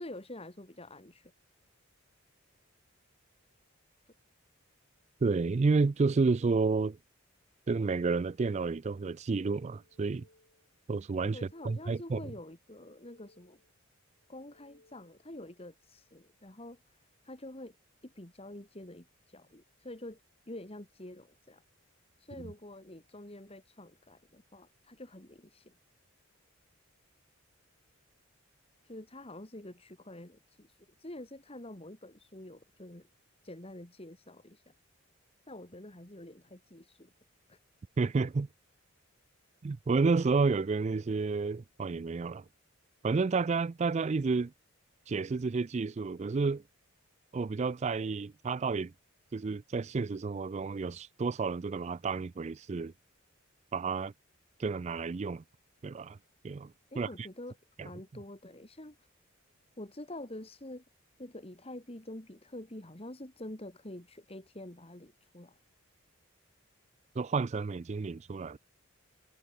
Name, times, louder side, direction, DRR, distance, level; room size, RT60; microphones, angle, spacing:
voice 1, 0.0-1.3 11.3-13.6 14.3-17.8 18.0-21.6 22.2-25.7 28.8-33.1 33.4-34.7 35.5-37.1 37.5-37.6 56.9-57.6 57.8-59.1 59.8-60.8 61.2-65.6, left 1 dB, 30° left, 2.2 m, -47 dB
voice 2, 5.2-7.0 7.7-10.2 10.9-11.4 11.6-12.2 38.0-38.5 39.6-42.4 43.0-44.5 45.1-46.6 47.3-48.9 49.3-52.9 53.7-54.1 54.6-55.4 55.8-56.2 56.4-57.1 57.8-57.9 67.2-68.6, right 4 dB, 30° right, 0.3 m, -30 dB
sound 1, 9.6-10.8 11.1-12.3 12.6-13.8 14.2-15.3, left 2 dB, 60° left, 5.0 m, -67 dB
head